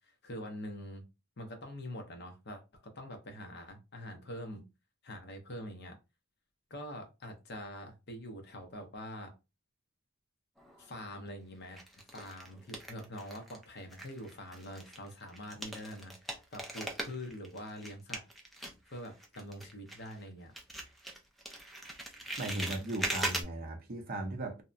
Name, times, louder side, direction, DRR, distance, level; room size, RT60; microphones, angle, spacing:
voice 1, 0.2-1.0 1.4-4.6 5.0-6.0 6.7-9.3 10.8-11.8 12.1-18.2 18.9-20.5, left 1 dB, 50° left, 0.7 m, -44 dB
sound 1, 10.6-11.2 11.8-13.6 13.9-20.3 20.5-23.4, right 1 dB, ahead, 0.4 m, -40 dB
voice 2, 22.4-24.6, right 2 dB, 45° right, 0.6 m, -37 dB
2.7 x 2.1 x 2.4 m
head